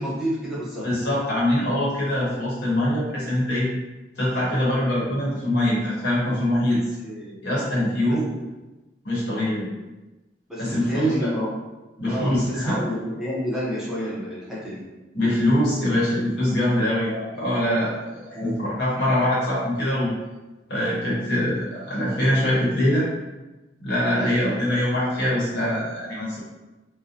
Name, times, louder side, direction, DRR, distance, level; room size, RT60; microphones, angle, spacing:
voice 1, 0.0-0.9 6.6-7.4 8.1-8.5 10.5-11.5 12.1-14.8 18.3-18.6 24.1-24.4, equal, ahead, -8 dB, 0.5 m, -30 dB
voice 2, 0.8-3.7 4.2-6.8 7.4-8.3 9.0-9.7 10.6-11.1 12.0-12.8 15.1-20.1 20.7-23.1 23.8-26.4, left 1 dB, 70° left, -7 dB, 1.0 m, -23 dB
2.5 x 2.0 x 2.6 m, 1.1 s
head